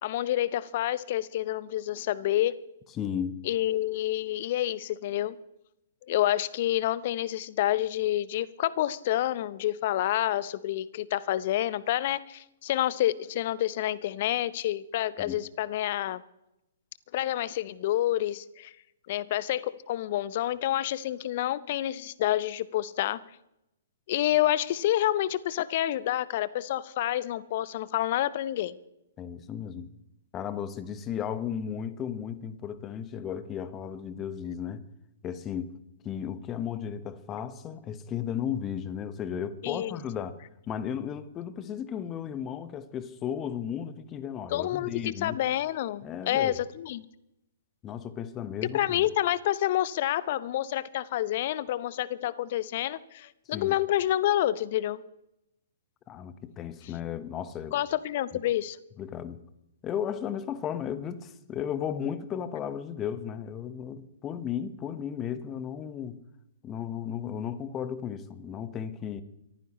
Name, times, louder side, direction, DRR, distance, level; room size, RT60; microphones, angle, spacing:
voice 1, 0.0-2.6 3.5-5.4 6.1-16.2 17.1-18.7 19.1-23.2 24.1-28.8 39.6-40.0 44.5-47.0 48.7-55.0 57.7-58.8, left 13 dB, 50° left, 0.8 m, -28 dB
voice 2, 3.0-3.4 15.2-15.4 29.2-29.9 30.3-34.8 35.2-35.8 36.0-45.4 46.0-46.6 47.8-49.0 53.5-53.8 56.1-57.8 59.0-59.4 59.8-66.2 66.6-69.2, left 8 dB, 25° left, 1.2 m, -35 dB
24.0 x 14.5 x 3.1 m
figure-of-eight pair, 120°, 0 cm